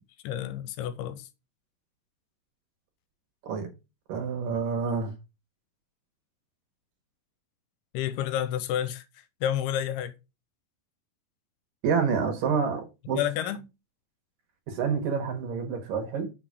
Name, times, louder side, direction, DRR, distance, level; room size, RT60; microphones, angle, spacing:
voice 1, 0.2-1.3 7.9-9.0 9.4-10.1 13.1-13.6, left 10 dB, 90° left, 2.7 m, -29 dB
voice 2, 4.1-5.1 11.8-13.2 14.7-16.3, right 6 dB, 65° right, 2.9 m, -28 dB
6.3 x 6.0 x 4.8 m
omnidirectional pair, 4.6 m